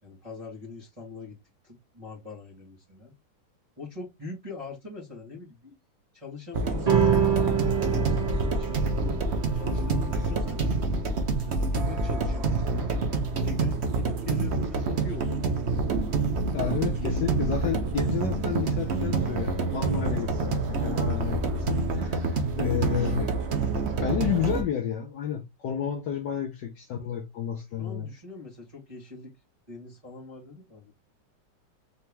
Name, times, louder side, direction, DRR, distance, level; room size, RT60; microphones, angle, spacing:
voice 1, 0.0-1.4 1.6-3.1 3.8-5.7 6.1-9.2 9.5-10.7 11.3-12.9 13.3-15.8 27.8-29.3 29.7-30.9, left 4 dB, 20° right, 1.2 m, -42 dB
sound 1, 6.5-24.6, right 3 dB, 75° right, 0.6 m, -27 dB
sound 2, 6.9-13.6, right 7 dB, 35° right, 0.6 m, -29 dB
voice 2, 16.5-23.3 24.0-28.1, left 9 dB, 65° left, 1.2 m, -31 dB
4.3 x 2.9 x 3.3 m
omnidirectional pair, 2.3 m